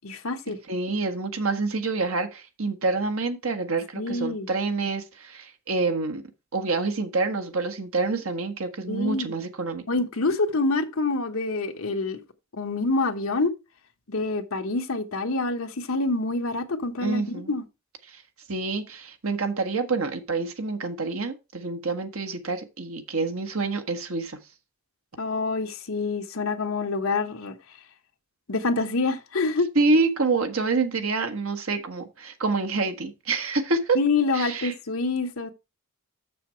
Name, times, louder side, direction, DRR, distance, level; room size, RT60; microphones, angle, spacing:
voice 1, 0.0-0.6 3.9-4.5 8.9-9.3 9.9-12.2 12.5-13.5 14.1-17.6 25.2-27.6 28.5-29.7 33.9-35.5, left 3 dB, 70° left, 1.1 m, -26 dB
voice 2, 0.7-6.2 6.5-9.8 17.0-17.5 18.1-18.2 18.5-24.4 29.7-34.0 34.3-34.7, right 3 dB, 70° right, 1.4 m, -27 dB
6.9 x 6.8 x 4.5 m
head